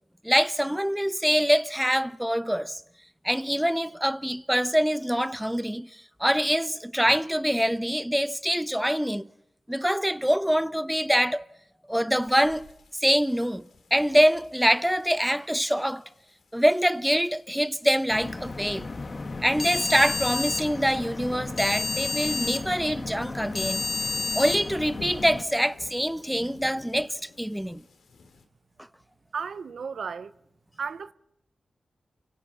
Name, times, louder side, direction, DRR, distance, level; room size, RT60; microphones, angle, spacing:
voice 1, 0.2-2.8 3.2-5.9 6.2-9.3 9.7-11.5 11.9-12.7 13.0-13.7 13.9-16.0 16.5-18.9 19.4-23.8 24.3-27.8, equal, 5° right, 0.8 m, -24 dB
sound 1, 12.1-28.4, left 3 dB, 85° left, 2.7 m, -53 dB
sound 2, 18.1-25.4, left 3 dB, 50° left, 1.7 m, -31 dB
voice 2, 29.3-30.3 30.8-31.1, right 6 dB, 75° right, 0.7 m, -34 dB
29.0 x 25.0 x 4.2 m
cardioid pair, 45°, 0 cm